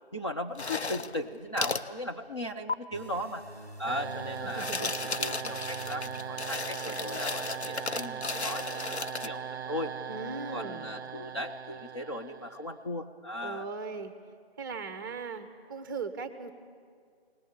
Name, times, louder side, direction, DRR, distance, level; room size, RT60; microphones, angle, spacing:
voice 1, 0.1-3.4 3.8-9.9 10.5-13.7, left 1 dB, 30° left, 3 dB, 0.5 m, -37 dB
sound 1, 0.6-1.2 1.6-1.9 2.7-2.8 4.4-9.3, left 4 dB, 90° left, 0.8 m, -34 dB
sound 2, 2.9-8.8, right 1 dB, 10° left, 1.5 m, -48 dB
sound 3, 3.9-12.8, right 7 dB, 80° right, 0.5 m, -39 dB
voice 2, 4.4-4.9 10.1-10.9 13.4-14.1 14.6-16.5, right 4 dB, 20° right, 9 dB, 0.8 m, -38 dB
21.0 x 19.5 x 7.3 m, 2.1 s
figure-of-eight pair, 145°, 32 cm